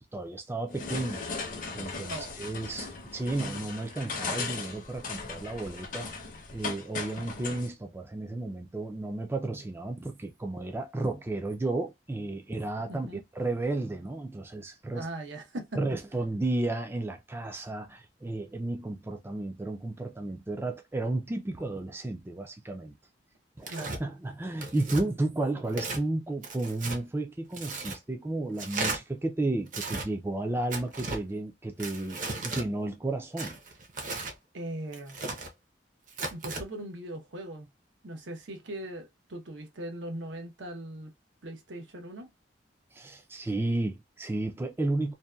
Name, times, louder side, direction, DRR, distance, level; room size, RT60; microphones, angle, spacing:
voice 1, 0.1-1.2 1.7-6.2 6.5-15.1 15.8-22.9 23.6-23.7 24.0-33.6 42.9-45.1, right 2 dB, 15° right, 0.3 m, -33 dB
sound 1, 0.7-7.7, left 4 dB, 45° left, 0.7 m, -38 dB
voice 2, 12.9-13.2 14.9-16.0 23.7-24.1 34.5-35.2 36.3-37.7 38.0-41.1 41.4-42.3, right 1 dB, 90° right, 0.8 m, -39 dB
Tearing, 23.6-24.0 24.6-25.0 25.7-26.0 26.4-27.0 27.5-28.0 28.6-29.0 29.7-30.1 30.7-31.2 31.8-32.7 33.4-34.4 34.9-35.5 36.1-36.6, right 3 dB, 45° right, 0.6 m, -35 dB
2.7 x 2.2 x 2.2 m
head